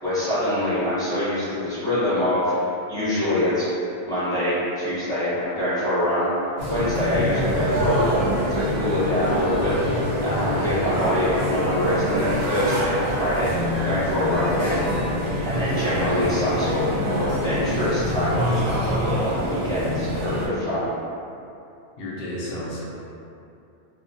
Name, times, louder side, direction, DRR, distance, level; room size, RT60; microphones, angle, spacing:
voice 1, 0.0-2.5 2.9-3.7 4.0-6.3 6.7-8.2 8.5-10.0 10.2-13.5 13.8-14.8 15.4-18.8 19.2-20.9, left 1 dB, 5° left, -13 dB, 0.8 m, -24 dB
sound 1, 6.6-20.5, equal, 75° right, 0.9 m, -25 dB
voice 2, 22.0-22.8, left 1 dB, 70° left, -6 dB, 0.8 m, -32 dB
2.4 x 2.2 x 2.6 m, 2.7 s
omnidirectional pair, 1.0 m